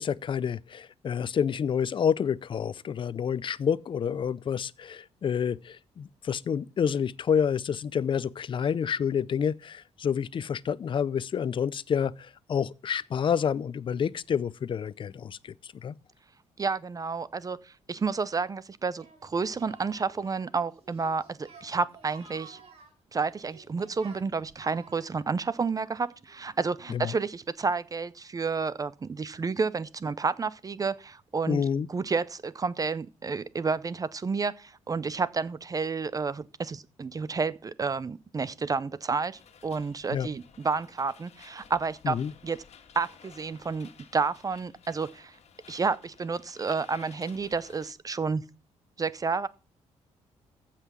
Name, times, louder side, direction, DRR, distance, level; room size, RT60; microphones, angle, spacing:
voice 1, 0.0-15.5 15.8-15.9 26.9-27.1 31.5-31.9 40.1-40.3 42.0-42.3, left 7 dB, 45° left, 0.5 m, -28 dB
voice 2, 16.6-22.6 23.1-31.6 31.9-42.2 42.4-42.6 42.9-45.4 45.7-48.4 49.0-49.5, right 4 dB, 30° right, 0.6 m, -30 dB
Singing, 19.0-27.3, right 5 dB, 60° right, 5.3 m, -54 dB
sound 1, 39.3-47.9, left 7 dB, 65° left, 1.7 m, -54 dB
15.0 x 5.8 x 6.1 m
cardioid pair, 100°, 12 cm